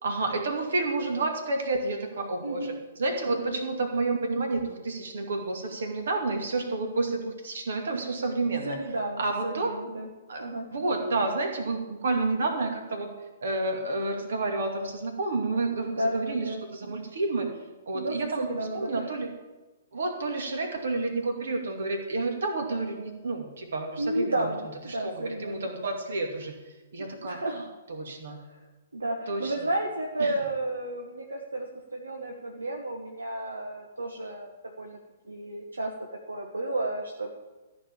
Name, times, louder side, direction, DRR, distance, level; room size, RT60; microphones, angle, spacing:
voice 1, 0.0-8.8 9.2-9.7 10.3-10.5 10.7-13.1 13.4-17.5 17.9-19.3 19.9-24.5 24.9-26.6 26.9-27.6 27.9-28.4 29.3-29.7 30.2-30.5, right 3 dB, 65° right, 4 dB, 2.4 m, -30 dB
voice 2, 2.4-2.8 3.3-3.7 7.9-8.0 8.6-10.1 10.4-10.7 15.8-16.6 17.9-19.1 24.0-25.7 27.2-27.6 28.5-28.6 28.9-31.7 31.9-34.5 34.8-35.0 35.3-35.9 36.3-37.3, right 1 dB, 80° right, 1 dB, 1.4 m, -32 dB
14.0 x 5.3 x 8.5 m, 1.2 s
figure-of-eight pair, 120°, 0 cm